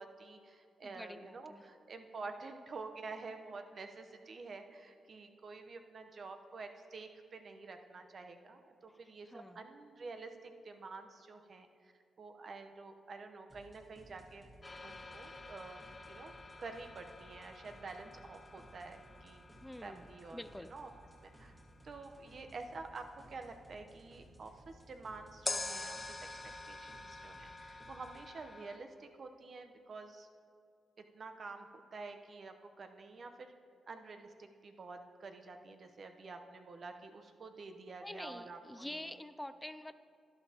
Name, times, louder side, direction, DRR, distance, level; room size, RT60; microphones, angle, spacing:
voice 1, 0.0-11.9 12.2-14.4 14.8-16.3 16.6-19.4 19.8-20.9 21.2-21.5 21.8-26.0 26.7-30.3 31.1-33.5 33.9-39.0, right 3 dB, 55° right, 6 dB, 0.8 m, -49 dB
voice 2, 0.8-1.7 8.9-9.0 9.3-9.7 19.6-20.7 38.0-39.9, left 1 dB, 10° left, 11 dB, 0.4 m, -47 dB
sound 1, 13.5-28.3, right 1 dB, 20° right, 2.2 m, -60 dB
sound 2, 14.6-22.6 25.5-28.8, left 3 dB, 30° left, 0.7 m, -47 dB
12.0 x 11.0 x 2.9 m, 2.3 s
cardioid pair, 75°, 0 cm